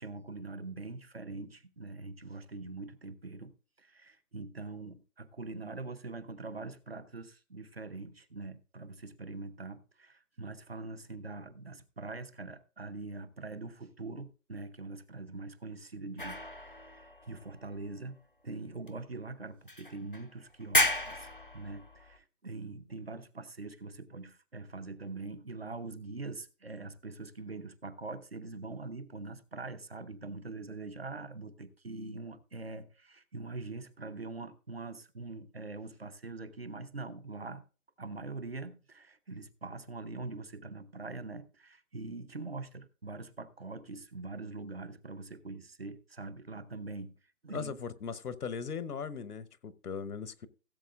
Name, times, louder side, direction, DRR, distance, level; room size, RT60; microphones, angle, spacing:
voice 1, 0.0-3.5 3.8-18.2 18.4-21.3 21.5-37.6 38.0-47.1 47.4-47.7, right 3 dB, 45° right, 0.8 m, -43 dB
sound 1, 16.2-18.1 18.9-19.0 19.7-20.3 20.6-22.2, left 1 dB, 40° left, 0.5 m, -33 dB
voice 2, 47.5-50.5, left 6 dB, 85° left, 1.0 m, -39 dB
17.0 x 7.7 x 2.4 m
hypercardioid pair, 180°, 44 cm